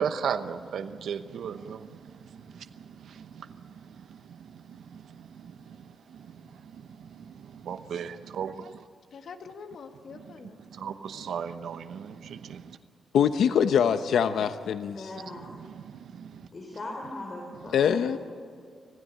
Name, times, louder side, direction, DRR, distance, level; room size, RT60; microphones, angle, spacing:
voice 1, 0.0-8.8 10.1-10.3 10.6-12.8 15.4-16.5, right 7 dB, 75° right, 9 dB, 0.9 m, -37 dB
voice 2, 9.1-12.2, left 5 dB, 60° left, 6 dB, 1.6 m, -47 dB
voice 3, 13.1-15.1 17.7-18.2, left 8 dB, 80° left, 10 dB, 0.8 m, -23 dB
voice 4, 14.8-15.5 16.5-17.8 18.1-18.2, left 2 dB, 30° left, 1 dB, 3.5 m, -39 dB
26.0 x 16.0 x 8.9 m, 2.3 s
wide cardioid pair, 155°, 0 cm